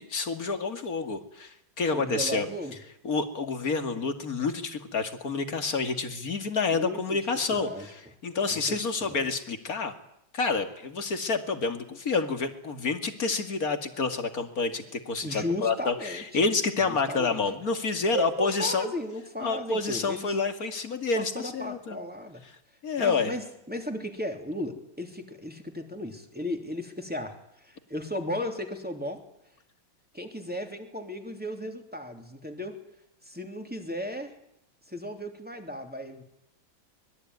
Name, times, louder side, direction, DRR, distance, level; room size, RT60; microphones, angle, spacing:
voice 1, 0.0-2.5 3.0-7.7 8.2-9.9 10.3-18.9 19.4-22.0 22.8-23.3, left 4 dB, 45° left, 7 dB, 2.7 m, -28 dB
voice 2, 1.9-2.7 6.7-7.2 7.5-7.9 8.5-9.3 15.2-16.4 16.9-17.4 18.1-20.4 21.2-22.4 22.9-29.2 30.1-32.8 33.2-34.3 34.9-36.2, left 1 dB, 5° right, 4 dB, 3.0 m, -35 dB
24.5 x 21.5 x 9.6 m, 0.79 s
omnidirectional pair, 2.3 m